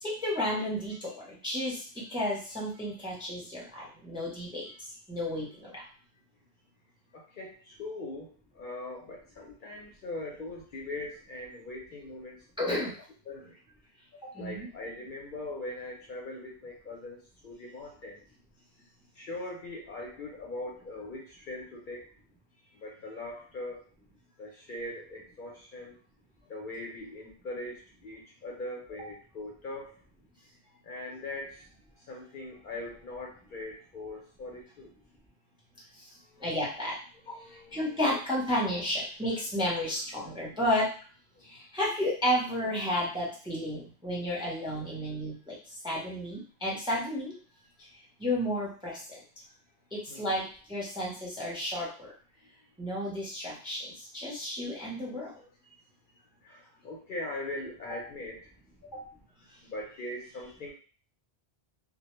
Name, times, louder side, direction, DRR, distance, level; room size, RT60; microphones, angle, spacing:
voice 1, 0.0-4.7 5.1-5.8 12.6-12.9 14.4-14.7 36.4-37.0 37.7-40.9 41.4-45.6 45.8-47.3 48.2-49.2 49.9-52.1 52.8-55.3, left 1 dB, 5° right, -5 dB, 0.5 m, -32 dB
voice 2, 7.1-8.3 8.5-12.9 13.3-13.5 14.2-18.2 19.2-22.0 22.8-23.8 24.4-26.0 26.5-30.0 30.8-31.7 32.0-34.9 36.4-36.5 37.2-38.0 41.4-41.5 50.1-50.3 56.4-58.5 58.9-59.1 59.6-60.7, left 2 dB, 60° left, -1 dB, 0.6 m, -41 dB
2.1 x 2.1 x 2.9 m, 0.40 s
omnidirectional pair, 1.1 m